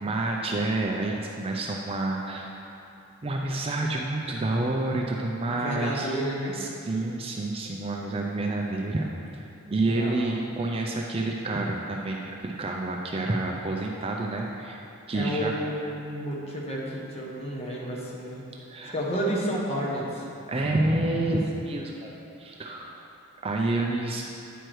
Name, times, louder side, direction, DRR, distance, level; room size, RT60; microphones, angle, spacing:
voice 1, 0.0-2.5 3.2-6.1 6.5-9.1 9.7-14.8 15.1-15.5 18.7-19.0 20.5-22.1 22.4-23.0 23.4-24.2, right 2 dB, 25° right, 0 dB, 0.4 m, -28 dB
voice 2, 5.5-6.6 9.9-10.2 15.1-18.4 18.8-20.3, equal, 30° left, -4 dB, 1.1 m, -31 dB
8.9 x 4.7 x 4.6 m, 2.7 s
head